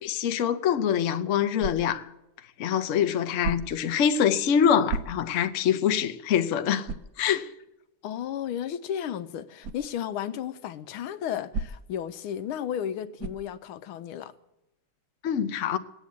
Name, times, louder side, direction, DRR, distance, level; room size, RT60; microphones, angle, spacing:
voice 1, 0.0-2.1 2.6-6.9 7.2-7.5 15.2-15.8, left 8 dB, 60° left, 0.8 m, -24 dB
sound 1, 1.6-2.1 3.4-3.9 4.9-5.5 6.0-6.1 6.8-7.2 9.6-9.9 11.5-12.0 13.2-13.5, right 4 dB, 65° right, 0.8 m, -34 dB
voice 2, 8.0-14.3, left 9 dB, 80° left, 1.6 m, -33 dB
19.5 x 8.8 x 8.4 m
omnidirectional pair, 2.3 m